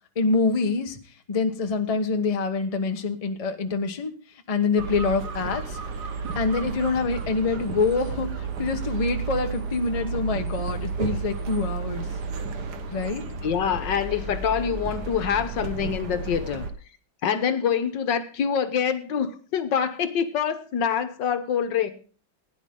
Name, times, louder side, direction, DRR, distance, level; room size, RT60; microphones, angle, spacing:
voice 1, 0.1-1.0 1.3-4.2 4.5-5.8 6.3-12.0 12.9-13.2, left 4 dB, 25° left, 1.0 m, -25 dB
sound 1, 4.8-16.7, right 4 dB, 60° right, 1.8 m, -32 dB
voice 2, 13.4-16.7 17.2-21.9, left 7 dB, 70° left, 1.7 m, -25 dB
17.0 x 10.0 x 3.7 m
omnidirectional pair, 2.1 m